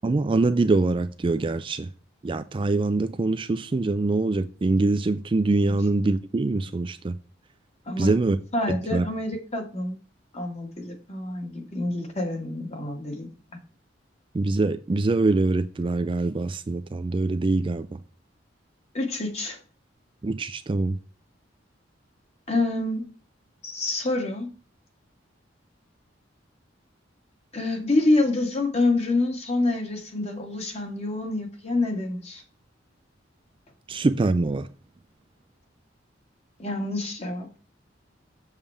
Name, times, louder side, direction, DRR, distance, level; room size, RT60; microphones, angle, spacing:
voice 1, 0.0-1.9 2.2-7.2 8.0-8.4 8.7-9.0 14.3-18.0 20.2-21.0 33.9-34.7, right 3 dB, 25° right, 0.4 m, -24 dB
voice 2, 8.5-10.0 10.3-13.3 18.9-19.6 22.5-23.1 23.6-24.5 27.5-32.4 36.6-37.6, left 2 dB, 35° left, 1.9 m, -27 dB
7.3 x 6.9 x 3.5 m
head